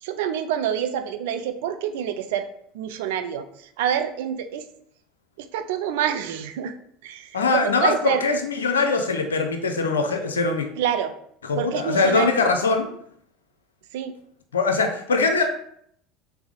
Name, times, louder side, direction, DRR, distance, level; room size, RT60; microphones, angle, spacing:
voice 1, 0.0-2.5 2.7-4.6 5.4-6.7 7.0-8.2 10.8-11.1 11.6-12.3 13.9-14.1, right 9 dB, 70° right, 9 dB, 0.4 m, -27 dB
voice 2, 7.3-10.7 11.4-12.9 14.5-15.4, left 4 dB, 90° left, 5 dB, 0.6 m, -22 dB
3.5 x 3.4 x 3.9 m, 0.68 s
hypercardioid pair, 80°, 0 cm